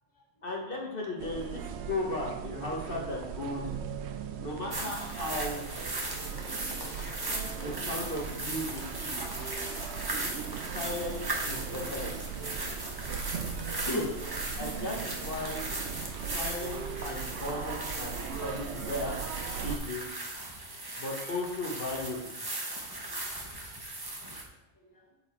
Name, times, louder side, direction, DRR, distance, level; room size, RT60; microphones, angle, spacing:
voice 1, 0.4-3.7 4.4-5.6 7.6-9.2 10.7-12.2 14.6-15.6 16.3-19.1 19.6-20.0 21.0-22.3, left 2 dB, 55° left, -2 dB, 1.3 m, -36 dB
sound 1, 1.2-19.8, right 7 dB, 75° right, 0.8 m, -39 dB
sound 2, 4.7-24.4, right 2 dB, 25° right, 0.8 m, -38 dB
voice 2, 13.5-14.1 14.4-14.5 17.6-17.7 18.6-18.7 21.2-21.3 23.1-23.5 24.8-25.1, left 1 dB, 20° left, -1 dB, 1.2 m, -39 dB
7.6 x 4.1 x 4.4 m, 0.92 s
omnidirectional pair, 1.2 m